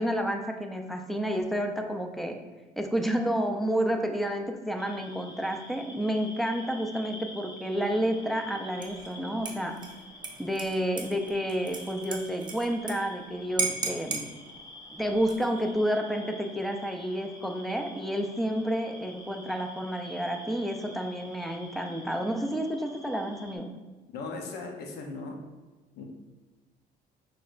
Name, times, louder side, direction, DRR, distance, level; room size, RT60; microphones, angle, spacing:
voice 1, 0.0-2.4 2.8-9.8 10.4-14.3 14.9-23.8, equal, ahead, 4 dB, 0.4 m, -30 dB
sound 1, 4.8-23.6, left 1 dB, 25° left, 1.0 m, -48 dB
Dishes pots and pans / Liquid, 8.8-9.1 9.5-12.9 13.2-13.3 13.6-14.3 15.1-15.6, right 4 dB, 25° right, 0.7 m, -35 dB
voice 2, 24.1-25.4 26.0-26.1, left 3 dB, 70° left, 2 dB, 0.8 m, -38 dB
6.0 x 3.2 x 2.5 m, 1.2 s
cardioid pair, 110°, 17 cm